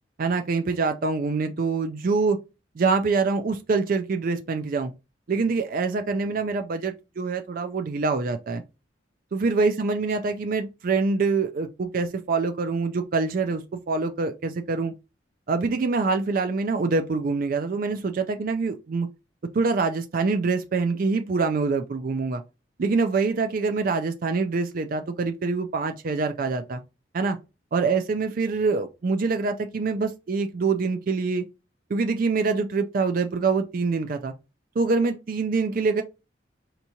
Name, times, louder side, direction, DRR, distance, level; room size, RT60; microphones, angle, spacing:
voice 1, 0.2-2.4 2.8-4.9 5.3-8.6 9.3-14.9 15.5-19.1 19.5-22.4 22.8-26.8 27.1-27.4 27.7-31.4 31.9-34.3 34.8-36.0, right 4 dB, 45° right, 0.4 m, -25 dB
4.6 x 2.9 x 2.6 m
head